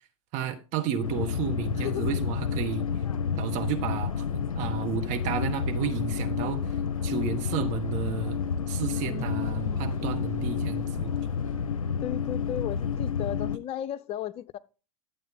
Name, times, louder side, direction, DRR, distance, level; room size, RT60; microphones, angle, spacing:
voice 1, 0.3-2.8 3.4-6.6 7.0-8.4 8.7-11.1, right 8 dB, 45° right, 1.6 m, -32 dB
sound 1, 1.0-13.6, left 6 dB, 80° left, 0.5 m, -30 dB
voice 2, 1.8-2.1 8.9-10.0 12.0-14.6, left 11 dB, 35° left, 0.7 m, -35 dB
sound 2, 3.5-11.7, left 1 dB, 15° right, 5.2 m, -52 dB
12.0 x 7.6 x 3.7 m
figure-of-eight pair, 95°, 17 cm